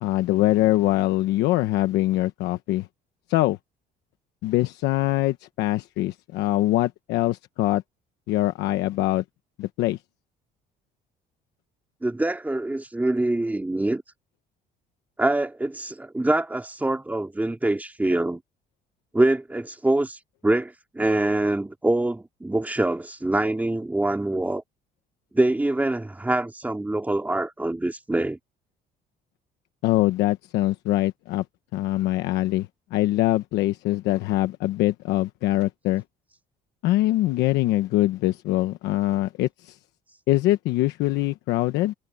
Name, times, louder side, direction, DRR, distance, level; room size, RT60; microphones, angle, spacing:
voice 1, 0.0-2.9 3.3-3.6 4.4-7.8 8.3-9.2 9.6-10.0 29.8-31.4 31.7-36.0 36.8-39.8 40.3-41.9, left 16 dB, 90° left, 1.1 m, -23 dB
voice 2, 12.0-14.0 15.2-18.4 19.1-24.6 25.3-28.4, right 2 dB, 10° right, 2.6 m, -24 dB
cardioid pair, 110°, 17 cm